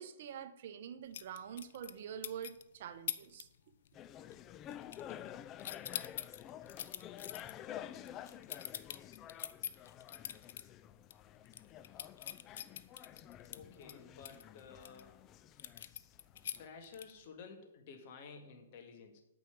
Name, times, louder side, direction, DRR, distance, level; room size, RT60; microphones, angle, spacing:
voice 1, 0.0-3.5, right 8 dB, 50° right, 10 dB, 1.0 m, -46 dB
sound 1, 1.1-2.0 2.2-2.6 3.1-3.4 3.7-4.1 4.3-5.3 5.6-10.6 11.0-11.1 11.5-15.0 15.6-17.3, left 10 dB, 60° left, 0.7 m, -44 dB
sound 2, 3.9-16.7, left 11 dB, 20° left, 0.3 m, -51 dB
voice 2, 13.5-15.2 16.6-19.2, left 5 dB, 45° left, 4 dB, 2.0 m, -53 dB
9.0 x 6.1 x 8.3 m, 0.85 s
hypercardioid pair, 150°, 0 cm